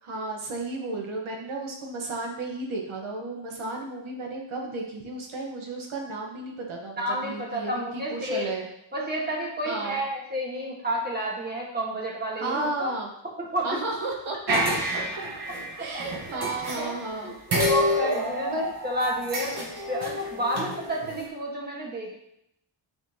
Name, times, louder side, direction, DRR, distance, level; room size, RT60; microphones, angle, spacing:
voice 1, 0.0-8.7 9.6-10.0 12.3-13.1 13.6-14.6 15.8-17.3 18.5-18.7, right 2 dB, 75° right, 0 dB, 1.1 m, -33 dB
voice 2, 7.0-8.5 8.9-12.9 13.4-13.8 15.8-16.5 16.8-17.3 17.6-18.6 18.8-22.2, equal, 20° right, -3 dB, 1.3 m, -30 dB
sound 1, 14.5-17.2 17.5-21.2, equal, 50° right, 1.2 m, -29 dB
9.2 x 3.8 x 2.7 m, 0.78 s
wide cardioid pair, 155°, 49 cm